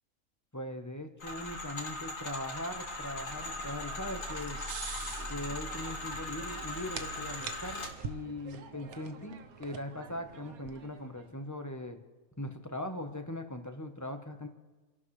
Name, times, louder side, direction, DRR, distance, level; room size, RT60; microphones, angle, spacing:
voice 1, 0.5-4.6 5.3-12.0 12.4-14.5, left 1 dB, 15° left, 5 dB, 0.9 m, -40 dB
sound 1, 1.2-7.9, left 2 dB, 65° left, 2.2 m, -39 dB
sound 2, 2.7-11.2, right 6 dB, 85° right, 1.4 m, -46 dB
30.0 x 11.5 x 3.2 m, 1.2 s
omnidirectional pair, 1.5 m